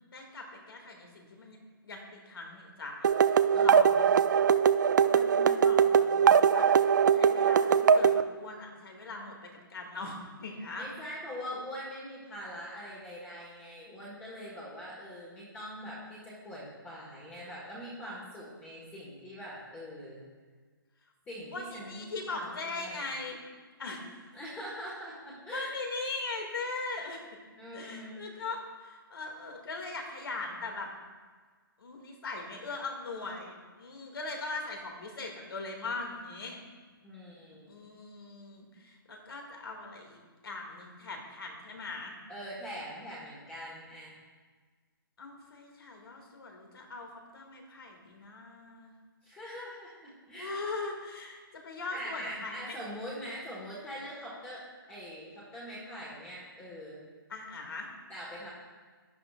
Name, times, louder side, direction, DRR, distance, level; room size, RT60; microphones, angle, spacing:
voice 1, 0.1-1.6 1.8-3.2 3.6-4.1 5.1-6.7 7.1-9.3 9.7-10.9 21.5-23.4 23.8-24.1 25.5-27.2 27.7-30.9 31.8-36.6 37.7-42.1 45.2-48.9 50.4-52.8 57.3-57.9, left 3 dB, 80° left, 2 dB, 2.3 m, -40 dB
sound 1, 3.0-8.2, right 7 dB, 55° right, 0.4 m, -22 dB
voice 2, 3.5-4.1 10.8-20.2 21.3-22.5 22.8-23.0 24.3-25.7 27.5-28.2 37.0-37.9 42.3-44.2 49.2-50.5 51.9-57.0 58.1-58.5, equal, 10° left, -6 dB, 1.5 m, -43 dB
11.0 x 9.5 x 2.5 m, 1.5 s
hypercardioid pair, 165°, 12 cm